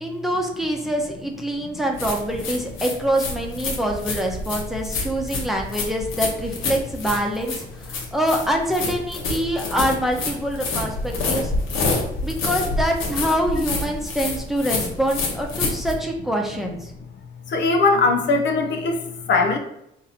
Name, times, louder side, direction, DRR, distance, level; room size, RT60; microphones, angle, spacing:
voice 1, 0.0-11.5 12.2-16.9, equal, ahead, 1 dB, 0.8 m, -25 dB
sound 1, 1.9-15.9, left 3 dB, 85° left, 1.1 m, -28 dB
voice 2, 17.5-19.0 19.3-19.6, left 3 dB, 65° left, 4 dB, 0.7 m, -19 dB
3.9 x 2.7 x 4.1 m, 0.81 s
cardioid pair, 90°, 20 cm